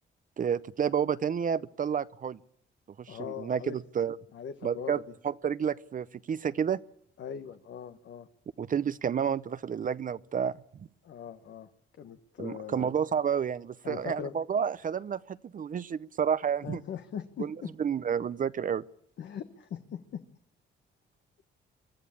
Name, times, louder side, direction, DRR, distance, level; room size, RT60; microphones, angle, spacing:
voice 1, 0.4-2.4 3.0-4.2 4.6-6.8 8.6-10.5 10.8-10.9 12.4-16.8 17.4-18.8, right 7 dB, 40° right, 14 dB, 0.7 m, -30 dB
voice 2, 3.1-3.8 4.3-5.0 7.2-8.3 11.0-11.7 12.0-12.9 13.8-14.3 16.6-17.7 19.2-20.2, left 8 dB, 70° left, 8 dB, 1.5 m, -40 dB
24.0 x 13.5 x 8.8 m, 0.72 s
cardioid pair, 90°, 20 cm